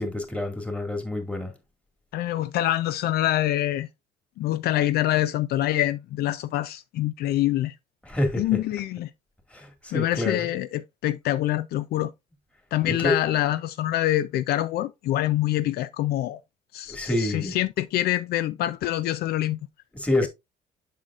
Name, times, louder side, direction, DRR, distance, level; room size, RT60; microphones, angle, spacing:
voice 1, 0.0-1.5 8.1-8.6 9.5-10.5 12.9-13.1 16.9-17.6 19.9-20.3, left 1 dB, 5° left, 2.0 m, -27 dB
voice 2, 2.1-3.9 4.4-7.7 8.4-9.1 9.9-12.1 12.7-16.4 16.7-19.6, left 14 dB, 70° left, 0.4 m, -25 dB
7.4 x 6.5 x 2.4 m
cardioid pair, 110°, 17 cm